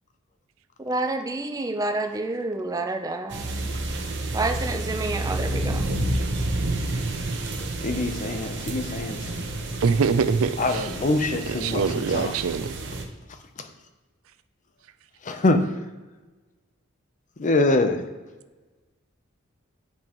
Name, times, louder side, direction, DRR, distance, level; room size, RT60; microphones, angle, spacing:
voice 1, 0.8-3.7 4.3-5.9, right 2 dB, 20° right, 6 dB, 0.5 m, -29 dB
sound 1, 3.3-13.0, right 2 dB, 60° right, 0.9 m, -30 dB
voice 2, 7.8-9.3 10.6-12.3 13.6-13.7 15.2-15.8 17.4-18.0, left 2 dB, 40° left, 7 dB, 0.6 m, -24 dB
voice 3, 9.8-10.9 11.6-12.7, right 5 dB, 85° right, 12 dB, 0.4 m, -23 dB
9.5 x 4.4 x 3.0 m, 1.2 s
head